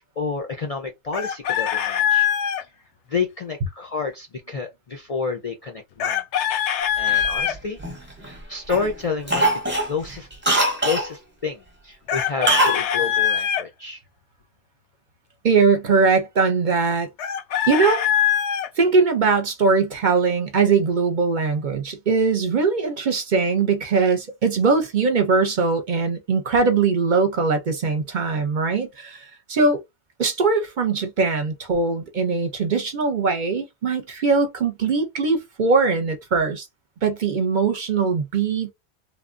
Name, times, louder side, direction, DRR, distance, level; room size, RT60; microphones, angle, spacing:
voice 1, 0.0-2.3 3.1-6.5 7.0-7.8 8.2-10.3 10.8-14.0, left 5 dB, 50° left, 0.4 m, -29 dB
Chicken rooster, 1.1-2.6 6.0-7.6 12.1-13.6 17.2-18.7, left 9 dB, 85° left, 0.9 m, -22 dB
Cough, 7.1-8.3 8.7-8.9 9.3-11.1 12.5-12.8 13.1-13.2, right 2 dB, 10° right, 0.6 m, -22 dB
voice 2, 15.4-17.1 17.7-18.1 18.8-29.8 30.2-36.7 37.0-38.7, right 4 dB, 50° right, 0.6 m, -21 dB
3.1 x 2.1 x 2.4 m
omnidirectional pair, 1.1 m